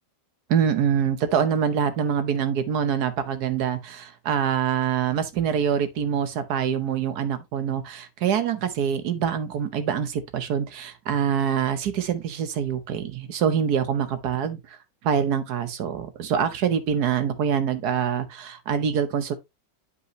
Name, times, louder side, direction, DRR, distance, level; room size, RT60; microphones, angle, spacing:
voice 1, 0.5-14.8 15.0-19.3, right 8 dB, 65° right, 1.4 m, -25 dB
8.1 x 5.3 x 3.1 m
omnidirectional pair, 1.9 m